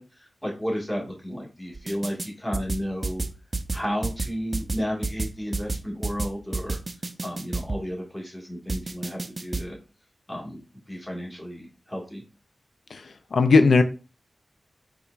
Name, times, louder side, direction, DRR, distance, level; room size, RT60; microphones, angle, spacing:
voice 1, 0.0-3.2 3.7-6.8 7.2-9.8 10.3-10.6 10.9-12.2, equal, 15° left, -2 dB, 1.6 m, -33 dB
sound 1, 1.7-2.3 2.5-7.8 8.7-9.6, right 3 dB, 45° right, 0.4 m, -30 dB
voice 2, 12.9-13.8, left 4 dB, 80° left, 9 dB, 0.3 m, -18 dB
4.2 x 2.3 x 2.4 m, 0.32 s
cardioid pair, 40°, 0 cm